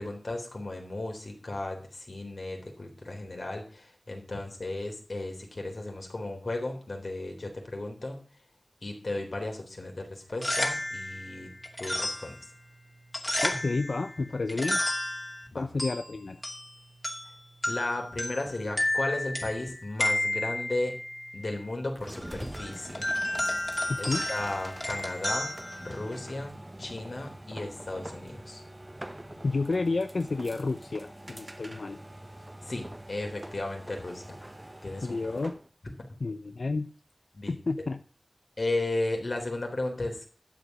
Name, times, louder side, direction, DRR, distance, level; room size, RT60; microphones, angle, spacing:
voice 1, 0.0-8.2 8.8-11.5 11.8-12.4 15.5-15.7 17.7-20.9 21.3-23.1 24.0-28.6 32.6-34.4 34.8-35.2 37.3-37.5 38.6-40.2, left 2 dB, 70° left, 2 dB, 3.8 m, -35 dB
sound 1, 10.2-26.5, left 1 dB, 25° left, 2.5 m, -33 dB
voice 2, 13.4-14.8 15.6-16.4 23.9-24.3 29.4-32.0 35.0-35.6 36.2-36.9 37.5-38.0, left 3 dB, 90° left, 8 dB, 0.6 m, -30 dB
sound 2, 21.9-35.7, right 1 dB, 25° right, 0.9 m, -45 dB
12.5 x 8.2 x 6.1 m, 0.40 s
wide cardioid pair, 55°, 0 cm